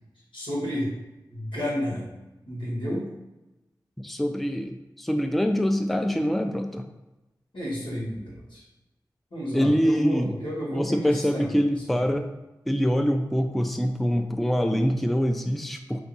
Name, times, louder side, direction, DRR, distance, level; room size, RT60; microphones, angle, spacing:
voice 1, 0.3-0.9 1.3-2.1 2.5-3.1 7.5-8.6 9.3-12.1, equal, 85° left, -5 dB, 1.4 m, -31 dB
voice 2, 4.0-6.9 9.5-10.3 10.7-12.3 12.7-16.0, equal, ahead, 5 dB, 0.3 m, -24 dB
2.7 x 2.6 x 4.0 m, 1.0 s
cardioid pair, 40°, 8 cm